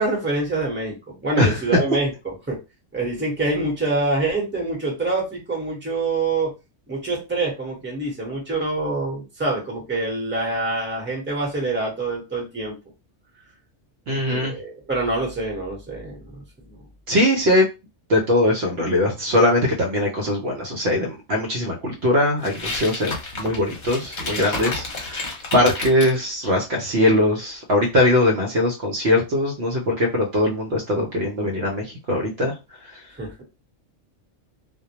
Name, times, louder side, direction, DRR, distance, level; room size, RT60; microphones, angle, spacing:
voice 1, 0.0-2.6 2.9-6.5 6.9-12.8 14.1-16.8 33.1-33.4, right 2 dB, 10° right, -2 dB, 0.9 m, -26 dB
voice 2, 1.4-1.8 14.1-14.5 17.1-17.7 18.1-32.5, left 1 dB, 65° right, 1 dB, 0.8 m, -21 dB
sound 1, 22.4-26.2, left 2 dB, 45° left, 0.8 m, -31 dB
2.2 x 2.1 x 2.8 m, 0.26 s
omnidirectional pair, 1.3 m